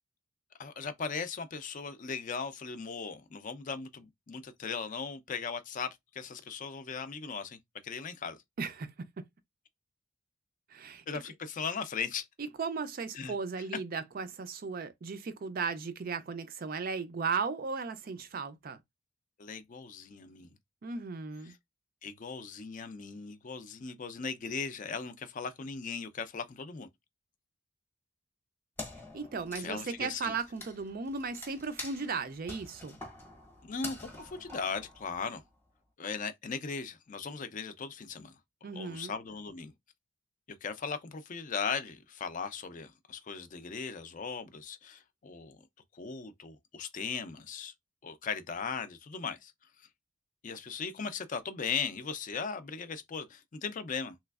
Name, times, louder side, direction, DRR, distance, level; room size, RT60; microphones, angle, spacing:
voice 1, 0.6-7.6 7.8-8.4 11.1-12.2 13.1-13.3 19.4-20.5 21.5-21.6 22.0-26.9 29.6-30.3 33.6-35.4 36.0-38.3 38.6-39.7 40.6-45.6 45.9-47.7 48.0-49.5 50.4-54.2, left 5 dB, 35° left, 0.4 m, -38 dB
voice 2, 8.6-9.2 10.7-11.2 12.6-18.8 20.8-21.5 29.1-33.0 38.6-39.2, right 5 dB, 40° right, 0.4 m, -36 dB
Wood, 28.8-35.5, left 2 dB, 10° left, 0.8 m, -46 dB
3.3 x 3.0 x 2.3 m
head